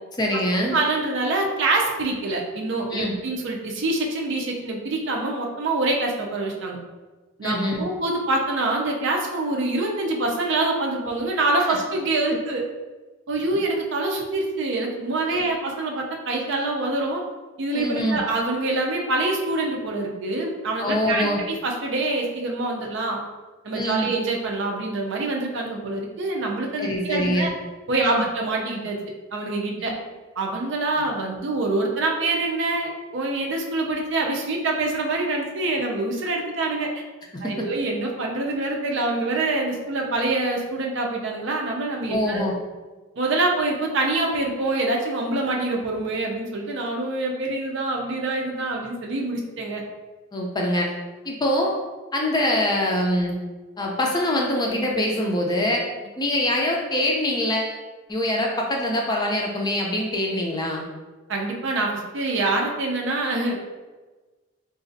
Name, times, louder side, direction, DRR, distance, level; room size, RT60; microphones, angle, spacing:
voice 1, 0.2-0.8 2.9-3.1 7.4-7.8 15.3-15.4 17.7-18.2 20.8-21.4 23.7-24.1 26.8-27.5 28.0-28.2 29.8-29.9 37.3-37.6 42.1-42.5 50.3-50.9 51.2-51.8 52.1-53.4 53.8-55.8 56.2-57.8 58.1-60.8, left 1 dB, 20° left, -1 dB, 0.4 m, -24 dB
voice 2, 0.7-6.8 7.4-12.6 13.3-17.2 17.6-23.2 23.6-27.5 27.9-29.0 29.3-29.9 30.4-36.9 37.4-42.4 43.2-49.8 61.3-63.6, right 2 dB, 60° right, 0 dB, 0.5 m, -25 dB
3.9 x 2.5 x 2.6 m, 1.3 s
head